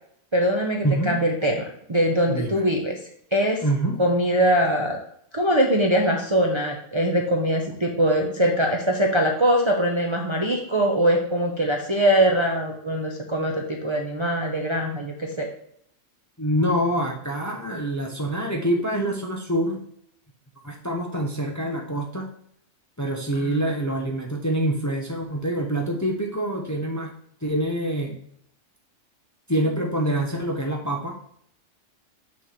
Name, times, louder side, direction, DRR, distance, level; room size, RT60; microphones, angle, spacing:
voice 1, 0.3-1.6 1.9-3.0 3.3-3.6 4.0-5.0 5.3-15.5 23.4-23.6, equal, 30° right, 0 dB, 0.6 m, -22 dB
voice 2, 0.8-1.2 2.3-2.6 3.6-4.0 16.4-19.8 20.6-22.3 23.0-27.1 27.4-28.2 29.5-31.1, right 1 dB, 15° left, 0 dB, 0.7 m, -25 dB
6.2 x 3.2 x 5.7 m, 0.67 s
omnidirectional pair, 1.3 m